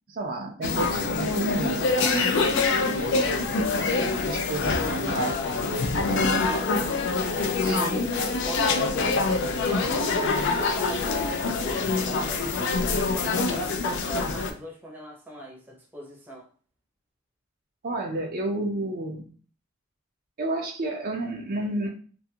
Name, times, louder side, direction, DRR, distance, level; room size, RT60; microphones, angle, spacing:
voice 1, 0.1-2.3 3.0-7.0 7.6-7.9 17.8-19.2 20.4-21.9, right 2 dB, 45° right, 0 dB, 0.4 m, -32 dB
sound 1, 0.6-14.5, left 3 dB, 55° left, 0.3 m, -25 dB
voice 2, 2.8-3.2 7.6-8.1 8.4-9.3 9.7-16.5, right 1 dB, 10° right, -3 dB, 0.7 m, -38 dB
2.5 x 2.3 x 2.7 m, 0.41 s
head